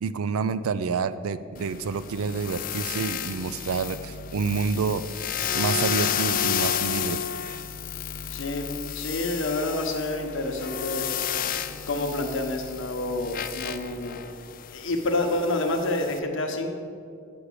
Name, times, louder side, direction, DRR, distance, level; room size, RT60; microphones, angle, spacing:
voice 1, 0.0-5.0 5.5-7.2, right 5 dB, 70° right, 14 dB, 0.4 m, -28 dB
sound 1, 1.6-16.2, left 9 dB, 40° left, 0.3 m, -32 dB
voice 2, 8.3-11.1 11.9-14.2 14.7-16.7, left 2 dB, 55° left, 4 dB, 0.9 m, -28 dB
8.0 x 6.0 x 6.7 m, 2.4 s
head